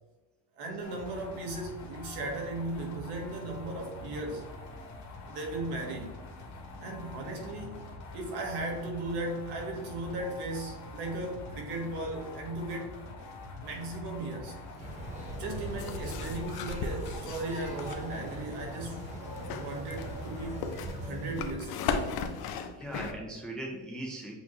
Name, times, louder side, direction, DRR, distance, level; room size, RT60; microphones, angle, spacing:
voice 1, 0.6-4.5 5.3-6.1 6.8-7.8 8.1-13.0 13.6-14.5 15.3-19.2 19.5-20.6 21.0-21.8 22.2-22.3, right 2 dB, 70° right, 1.4 m, -37 dB
sound 1, 0.8-20.6, left 2 dB, 40° left, 1.2 m, -45 dB
sound 2, 14.8-21.6, right 1 dB, 15° right, 1.0 m, -41 dB
sound 3, 15.8-18.0 19.3-23.1, left 6 dB, 60° left, 0.6 m, -36 dB
voice 2, 22.5-24.3, right 1 dB, ahead, 0.4 m, -39 dB
7.1 x 2.5 x 3.0 m
cardioid pair, 155°, 41 cm